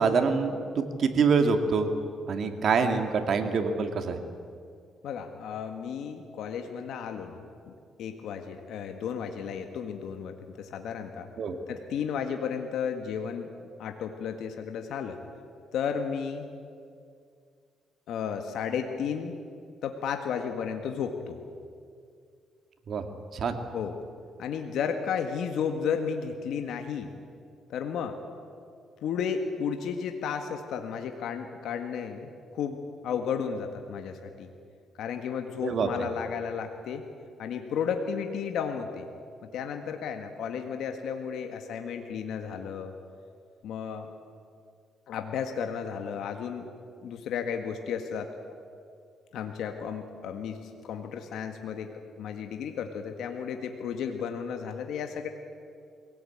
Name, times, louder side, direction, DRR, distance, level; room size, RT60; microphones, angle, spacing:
voice 1, 0.0-1.9 2.3-4.2 11.4-11.6 22.9-23.0 23.3-23.6 35.6-35.9, right 5 dB, 55° right, 6 dB, 2.3 m, -25 dB
voice 2, 5.0-7.7 8.0-11.3 11.7-13.5 13.8-15.2 15.7-16.5 18.1-19.4 19.8-21.4 23.7-24.0 24.4-27.1 27.7-28.2 29.0-34.5 35.0-37.1 37.4-39.1 39.4-42.9 43.6-44.1 45.1-46.7 47.0-48.3 49.3-55.3, left 7 dB, 80° left, 5 dB, 1.7 m, -33 dB
22.5 x 17.5 x 8.8 m, 2.3 s
cardioid pair, 90°, 0 cm